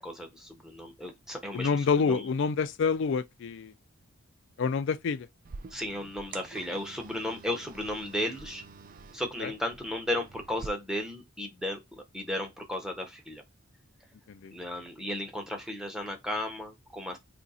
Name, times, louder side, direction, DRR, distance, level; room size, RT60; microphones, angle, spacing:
voice 1, 0.0-2.3 5.7-8.6 9.1-11.8 12.1-13.4 14.5-17.2, left 1 dB, 5° right, 0.8 m, -35 dB
voice 2, 1.5-3.7 4.6-5.3 9.4-9.5 14.4-14.5, left 5 dB, 60° left, 0.4 m, -27 dB
sound 1, 5.4-10.7, right 4 dB, 40° right, 0.4 m, -47 dB
2.8 x 2.6 x 4.1 m
head